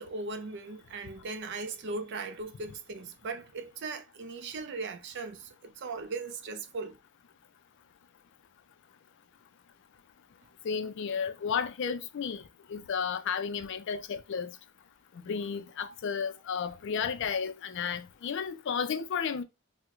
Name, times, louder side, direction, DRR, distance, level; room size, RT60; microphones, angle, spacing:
voice 1, 0.0-7.0 15.4-15.5 15.8-16.0, right 3 dB, 50° right, 0.4 m, -38 dB
voice 2, 10.6-12.4 12.7-14.5 15.2-19.4, left 6 dB, 55° left, 0.3 m, -33 dB
4.3 x 2.1 x 2.4 m
head